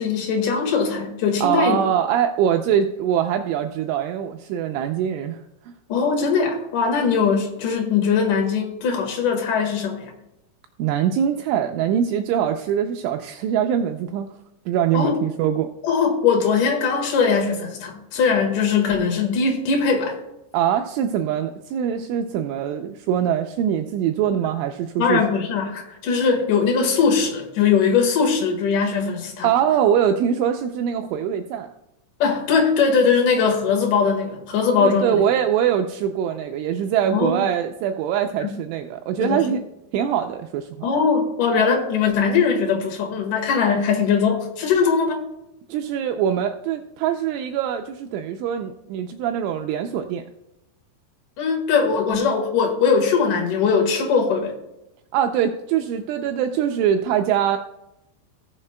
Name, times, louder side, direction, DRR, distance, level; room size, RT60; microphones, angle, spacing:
voice 1, 0.0-1.8 5.9-10.1 14.9-15.2 15.8-20.2 25.0-29.5 32.2-35.2 37.1-37.4 38.4-38.5 39.2-39.5 40.8-45.3 51.4-54.5, left 5 dB, 65° left, 2 dB, 2.1 m, -20 dB
voice 2, 1.4-5.4 10.8-14.3 14.7-15.7 20.5-25.2 29.4-31.7 34.8-39.6 39.9-40.9 45.7-50.2 55.1-57.6, right 9 dB, 85° right, 5 dB, 2.8 m, -23 dB
18.5 x 7.1 x 2.2 m, 0.89 s
omnidirectional pair, 5.9 m